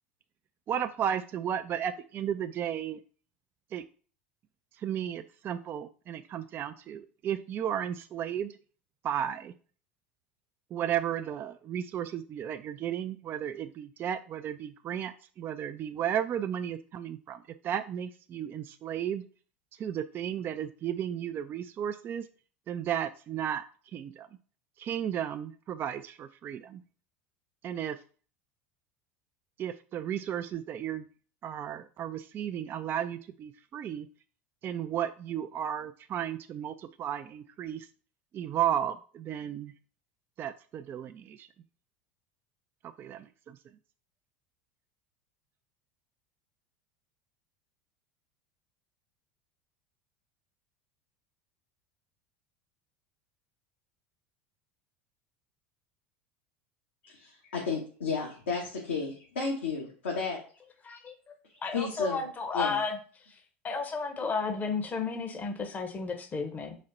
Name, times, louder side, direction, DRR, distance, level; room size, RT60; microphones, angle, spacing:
voice 1, 0.7-3.0 3.7-3.8 4.8-8.5 9.0-9.5 10.7-17.4 17.6-19.2 19.8-22.2 22.7-23.6 23.9-24.3 24.8-26.8 27.6-28.0 29.6-31.1 31.4-34.1 34.6-37.9 38.3-39.7 40.4-41.5 43.0-43.6, right 9 dB, 35° right, 9 dB, 0.3 m, -34 dB
voice 2, 57.0-60.4 61.0-61.1 61.6-62.3 62.5-62.8, left 4 dB, 80° left, -2 dB, 1.2 m, -33 dB
voice 3, 61.6-63.0 63.6-66.8, left 4 dB, 25° left, 6 dB, 0.8 m, -32 dB
4.2 x 3.2 x 3.8 m, 0.40 s
hypercardioid pair, 80°, 6 cm